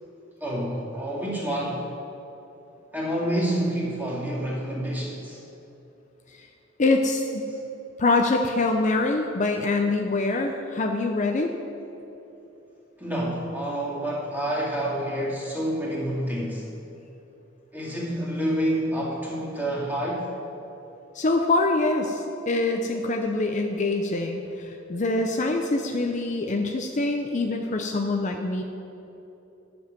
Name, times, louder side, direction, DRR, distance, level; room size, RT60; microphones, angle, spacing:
voice 1, 0.4-1.9 2.9-5.4 7.5-7.6 13.0-16.7 17.7-20.3, right 1 dB, 10° right, -5 dB, 2.4 m, -28 dB
voice 2, 6.8-7.5 8.0-11.5 21.1-28.6, left 2 dB, 40° left, 3 dB, 0.6 m, -24 dB
11.0 x 7.2 x 6.7 m, 2.9 s
head